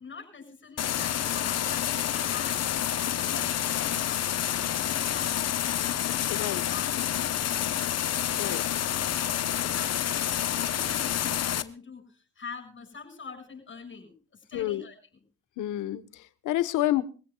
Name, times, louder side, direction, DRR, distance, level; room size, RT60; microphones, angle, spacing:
voice 1, 0.0-7.9 8.4-15.0, left 5 dB, 40° left, 6 dB, 6.9 m, -45 dB
sound 1, 0.8-11.6, left 10 dB, 55° left, 1.0 m, -28 dB
voice 2, 6.3-6.6 8.3-8.6 14.5-14.8 15.6-17.0, left 14 dB, 85° left, 14 dB, 1.3 m, -29 dB
24.0 x 16.0 x 2.4 m, 0.35 s
cardioid pair, 90°, 30 cm